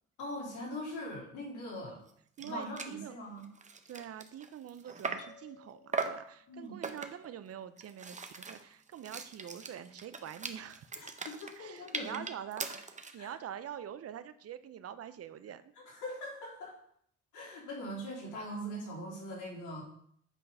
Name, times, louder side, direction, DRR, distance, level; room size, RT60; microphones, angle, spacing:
voice 1, 0.2-2.0 2.4-3.4 6.5-6.8 10.9-12.2 13.2-13.3 15.7-16.8 17.3-19.8, equal, 85° left, -4 dB, 3.3 m, -41 dB
sound 1, 2.1-2.2 2.4-2.5 2.8-3.0 3.4-5.4 5.9-6.3 6.8-7.3 7.8-13.2, right 4 dB, 25° right, 0.8 m, -40 dB
voice 2, 2.4-3.2 3.9-11.1 11.6-15.6, right 9 dB, 50° right, 13 dB, 0.6 m, -45 dB
sound 2, 5.2-7.1, left 4 dB, 20° left, 2.2 m, -59 dB
8.4 x 3.8 x 5.4 m, 0.65 s
cardioid pair, 90°, 30 cm